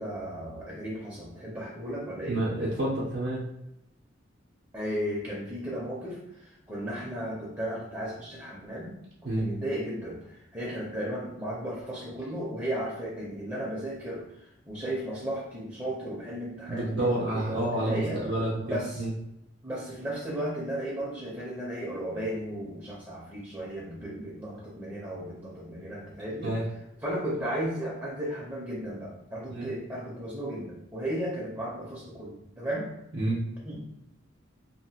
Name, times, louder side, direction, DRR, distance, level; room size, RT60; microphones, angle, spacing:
voice 1, 0.0-2.4 4.7-8.9 9.2-18.2 18.6-19.0 19.6-26.5 27.0-32.9 33.6-33.9, right 1 dB, 15° right, -5 dB, 0.6 m, -35 dB
voice 2, 2.3-3.4 9.2-9.5 16.7-18.6 19.0-19.1 26.4-26.6 29.5-29.7 33.1-33.4, right 1 dB, 55° right, -6 dB, 0.6 m, -29 dB
2.8 x 2.5 x 2.8 m, 0.83 s
head